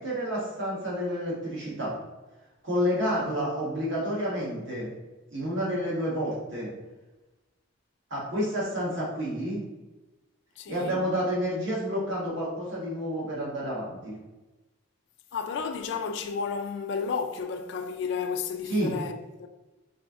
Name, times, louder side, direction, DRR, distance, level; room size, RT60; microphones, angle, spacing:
voice 1, 0.0-1.9 2.6-4.9 5.3-6.7 8.1-9.6 10.7-14.1 18.7-18.9, equal, 60° right, 1.3 m, -29 dB
voice 2, 10.6-11.0 15.3-19.5, left 5 dB, 60° left, 0.3 m, -32 dB
4.1 x 2.6 x 3.5 m
head